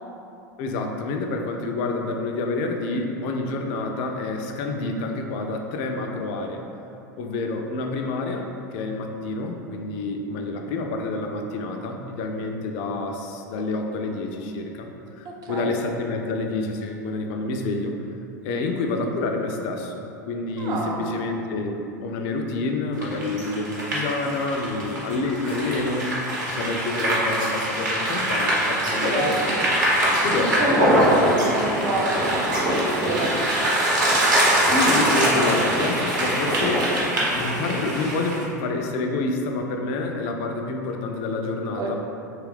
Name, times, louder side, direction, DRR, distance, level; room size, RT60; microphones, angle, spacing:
voice 1, 0.6-6.6 7.2-8.4 8.7-18.0 18.4-26.2 26.5-29.3 30.2-31.0 34.6-36.8 37.4-42.0, left 3 dB, 50° left, 3 dB, 0.3 m, -28 dB
voice 2, 20.6-21.0 28.9-29.6 30.4-33.7 41.8-42.0, right 2 dB, 40° right, -1 dB, 0.5 m, -28 dB
sound 1, 23.0-38.4, right 1 dB, 75° right, 0.9 m, -23 dB
2.9 x 2.3 x 3.1 m, 2.8 s
hypercardioid pair, 90°, 10 cm